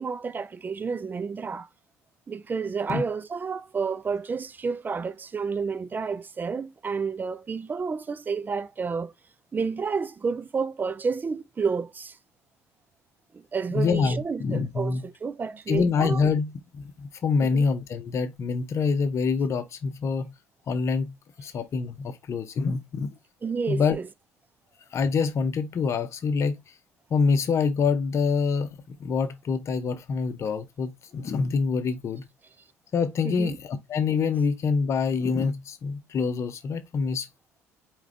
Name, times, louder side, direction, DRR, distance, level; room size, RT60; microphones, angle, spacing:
voice 1, 0.0-1.7 2.3-9.1 9.5-12.2 13.3-16.3 17.4-17.6 23.4-24.1 33.2-33.6, right 5 dB, 25° right, 0.5 m, -30 dB
voice 2, 13.7-15.0 15.7-20.3 20.7-23.1 23.7-24.0 24.9-26.6 27.1-28.7 29.0-32.3 32.9-37.3, left 5 dB, 40° left, 0.8 m, -26 dB
4.8 x 3.2 x 3.3 m
figure-of-eight pair, 55°, 7 cm